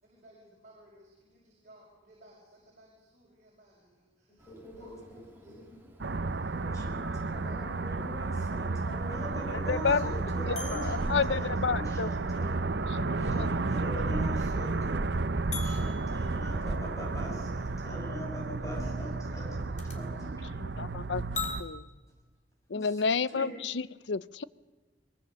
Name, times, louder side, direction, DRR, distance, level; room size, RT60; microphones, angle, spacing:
voice 1, 0.0-5.6 6.0-7.8 18.0-20.3, right 1 dB, 40° right, 6.2 m, -59 dB
voice 2, 4.3-5.6 6.5-12.6 13.2-15.1 15.6-19.5 19.9-20.4 22.7-23.0 23.3-23.5, equal, 20° left, 6.0 m, -42 dB
Bird, 4.4-17.9, right 2 dB, 10° right, 3.0 m, -55 dB
sound 1, 6.0-21.6, right 3 dB, 70° right, 0.8 m, -32 dB
voice 3, 9.7-10.1 10.5-12.1 13.0-13.5 20.8-21.2 21.6-21.8 22.7-24.4, left 5 dB, 80° left, 0.6 m, -30 dB
sound 2, 10.5-13.9 14.2-14.3 15.5-17.3 19.8-20.0 21.3-21.6, left 5 dB, 40° left, 3.1 m, -42 dB
23.0 x 22.0 x 6.9 m
head